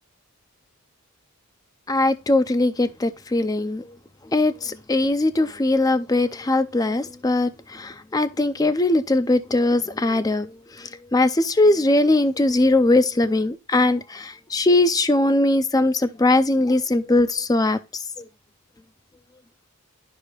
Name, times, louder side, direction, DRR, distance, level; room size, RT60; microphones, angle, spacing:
voice 1, 1.9-3.8 4.3-10.5 11.1-17.8, left 2 dB, 15° left, 0.4 m, -20 dB
12.0 x 4.9 x 2.4 m
head